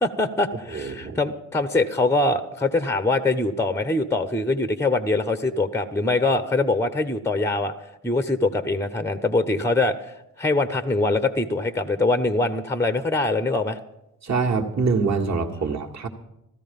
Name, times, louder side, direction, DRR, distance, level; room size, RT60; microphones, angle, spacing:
voice 1, 0.0-7.7 8.0-13.8, left 2 dB, 5° left, 12 dB, 0.9 m, -23 dB
voice 2, 0.7-1.2 14.2-16.1, right 4 dB, 35° right, 1 dB, 1.8 m, -24 dB
15.0 x 13.5 x 5.4 m, 0.88 s
hypercardioid pair, 45°, 46 cm